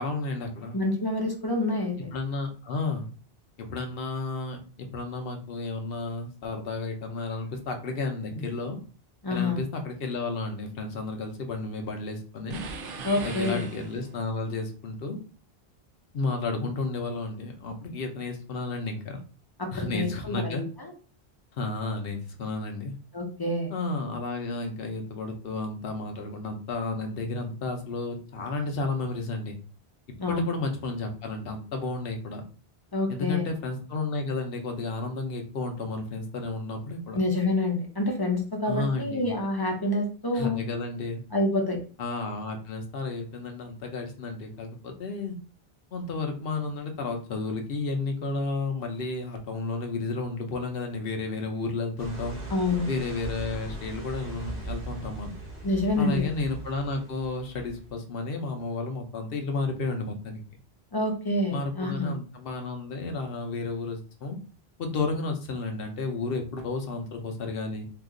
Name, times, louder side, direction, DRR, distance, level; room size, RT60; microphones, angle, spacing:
voice 1, 0.0-0.8 2.1-3.1 3.6-8.8 9.3-12.6 13.2-15.2 16.1-19.2 19.7-20.6 21.6-22.9 23.7-29.6 30.3-32.4 33.1-37.2 38.6-39.3 40.3-41.2 42.0-45.4 45.9-52.4 52.9-55.3 56.0-60.6 61.5-64.4 64.8-67.9, left 3 dB, 65° left, 4 dB, 0.9 m, -32 dB
voice 2, 0.7-2.1 9.2-9.6 13.0-13.6 19.6-20.9 23.1-23.7 30.2-30.5 32.9-33.5 37.1-40.6 41.3-41.8 52.5-52.9 55.6-56.2 60.9-62.1, left 2 dB, 25° left, 1 dB, 0.6 m, -27 dB
sound 1, 12.5-14.3, right 4 dB, 65° right, 0.7 m, -39 dB
sound 2, 52.0-57.9, right 2 dB, 45° right, 1.0 m, -39 dB
2.8 x 2.5 x 3.6 m, 0.38 s
omnidirectional pair, 1.0 m